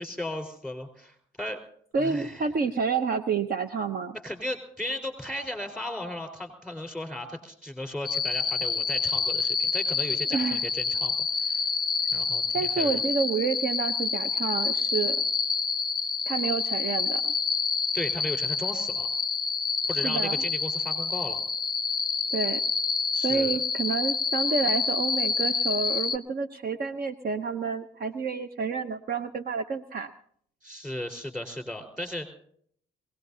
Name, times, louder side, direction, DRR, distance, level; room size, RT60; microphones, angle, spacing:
voice 1, 0.0-1.6 2.0-2.5 4.2-11.8 12.1-13.0 17.9-19.1 19.8-21.4 23.1-23.6 30.6-32.3, left 1 dB, ahead, 6 dB, 4.4 m, -36 dB
voice 2, 1.9-4.2 10.3-10.6 12.5-15.2 16.3-17.3 20.0-20.4 22.3-22.6 23.2-30.1, right 5 dB, 50° right, 9 dB, 0.9 m, -29 dB
sound 1, 8.0-26.2, left 5 dB, 20° left, 0.5 m, -28 dB
22.5 x 18.5 x 2.8 m, 0.63 s
cardioid pair, 90°, 20 cm